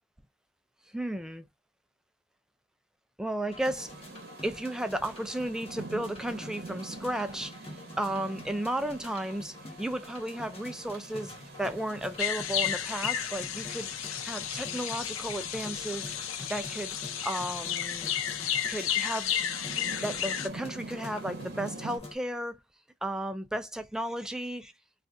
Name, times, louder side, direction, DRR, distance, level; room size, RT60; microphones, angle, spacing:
voice 1, 0.9-1.5 3.2-3.9 4.4-16.1 16.5-16.9 17.2-18.1 18.7-19.3 20.0-22.6 23.0-24.7, right 1 dB, 5° right, 0.3 m, -34 dB
sound 1, 3.5-22.1, left 2 dB, 30° left, 0.8 m, -47 dB
Rain, 3.6-22.0, right 3 dB, 50° right, 0.8 m, -46 dB
sound 2, 12.2-20.5, left 10 dB, 80° left, 0.5 m, -33 dB
3.7 x 2.5 x 2.2 m
head